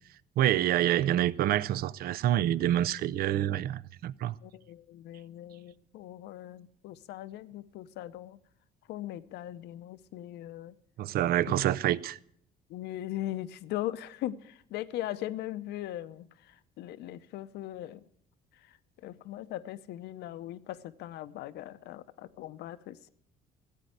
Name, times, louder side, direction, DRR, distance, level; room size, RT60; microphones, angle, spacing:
voice 1, 0.4-4.3 11.0-12.2, right 12 dB, 65° right, 0.5 m, -27 dB
voice 2, 4.4-8.4 8.9-10.8 12.7-18.0 19.0-23.1, left 13 dB, 80° left, 0.8 m, -39 dB
15.5 x 8.5 x 8.0 m
cardioid pair, 110°, 17 cm